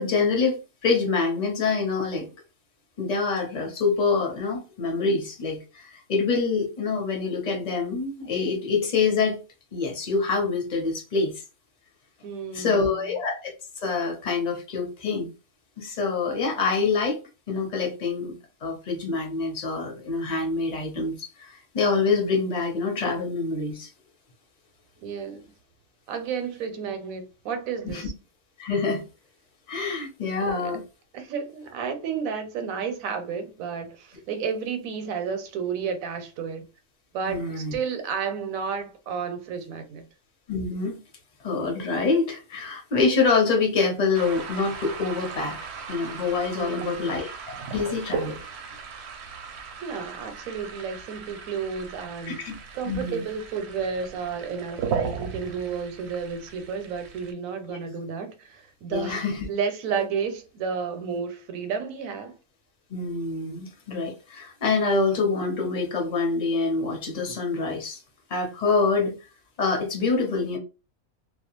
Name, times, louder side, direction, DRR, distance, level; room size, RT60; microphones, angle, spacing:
voice 1, 0.0-2.3 3.0-9.4 9.7-11.3 12.5-13.5 13.8-15.3 15.8-17.2 17.5-18.4 18.6-23.9 27.9-28.0 28.6-29.1 29.7-30.8 37.3-37.8 40.5-41.0 41.4-45.6 45.9-48.4 52.3-52.5 52.8-53.2 58.9-59.5 62.9-68.0 68.3-69.2 69.6-70.6, left 4 dB, 35° left, 0.7 m, -26 dB
voice 2, 12.2-13.1 25.0-25.5 26.1-28.1 30.5-30.8 31.1-36.7 37.1-40.1 46.6-47.1 49.8-52.4 52.7-62.4, right 6 dB, 85° right, 1.0 m, -32 dB
sound 1, 44.1-57.3, right 6 dB, 65° right, 0.7 m, -37 dB
2.3 x 2.2 x 2.9 m
omnidirectional pair, 1.4 m